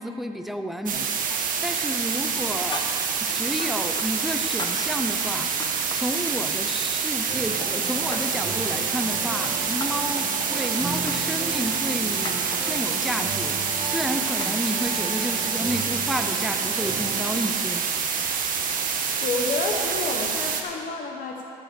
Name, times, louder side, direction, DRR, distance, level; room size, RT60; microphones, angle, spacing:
voice 1, 0.0-2.9 3.2-13.6 13.8-18.2, equal, ahead, 7 dB, 0.6 m, -31 dB
sound 1, 0.9-20.6, right 6 dB, 55° right, 1.2 m, -27 dB
sound 2, 1.3-1.9 2.1-4.1 4.3-6.1 6.6-7.3 7.6-8.5 9.0-14.6, left 3 dB, 25° left, 1.1 m, -39 dB
sound 3, 7.3-17.5, right 2 dB, 30° right, 1.7 m, -36 dB
voice 2, 18.8-21.4, left 3 dB, 55° left, 1 dB, 1.1 m, -30 dB
14.0 x 5.6 x 7.4 m, 2.6 s
cardioid pair, 110°, 17 cm